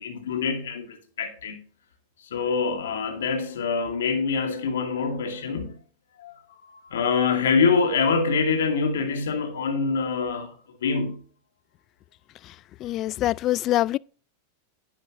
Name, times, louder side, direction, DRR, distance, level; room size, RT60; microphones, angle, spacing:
voice 1, 0.0-1.6 2.2-5.8 6.2-11.2, left 5 dB, 80° left, 2.2 m, -25 dB
voice 2, 12.8-14.0, left 15 dB, 40° left, 0.3 m, -24 dB
10.5 x 10.0 x 3.0 m
hypercardioid pair, 100°, 0 cm